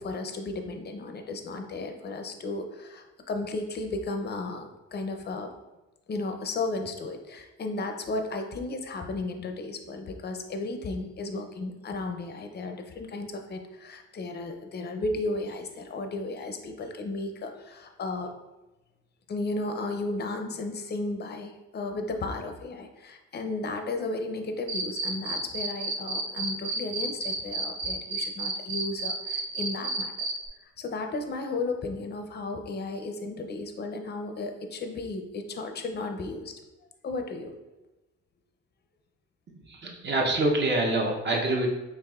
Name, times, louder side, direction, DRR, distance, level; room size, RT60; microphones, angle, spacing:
voice 1, 0.0-5.5 6.1-18.3 19.3-30.1 30.6-36.5 37.0-37.5, left 2 dB, 35° left, 5 dB, 0.5 m, -34 dB
Cricket, 24.7-30.3, right 4 dB, 20° right, 1.1 m, -30 dB
voice 2, 39.7-41.7, right 2 dB, 35° right, 0 dB, 0.8 m, -25 dB
4.6 x 3.0 x 2.3 m, 1.0 s
cardioid pair, 90°, 30 cm